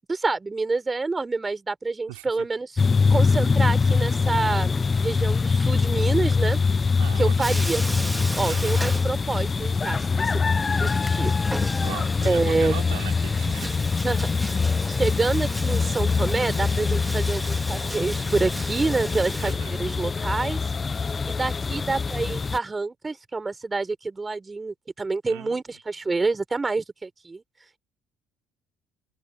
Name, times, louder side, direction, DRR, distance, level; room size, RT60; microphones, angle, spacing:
voice 1, 0.1-2.7 3.1-6.6 7.2-7.8 8.4-10.4 10.8-11.3 12.2-12.8 14.0-14.3 14.9-20.6 21.2-27.4, right 3 dB, 25° right, 4.2 m, -27 dB
voice 2, 2.1-2.5 7.0-7.3 8.5-8.8 11.8-13.8 19.4-19.8 25.3-25.6, right 24 dB, 85° right, 3.9 m, -39 dB
sound 1, 2.8-22.6, left 4 dB, 30° left, 0.6 m, -24 dB
Bathtub (filling or washing), 7.4-9.7 10.0-10.1 10.5-19.5, right 1 dB, 5° right, 2.2 m, -36 dB
open air
hypercardioid pair, 60°, 0 cm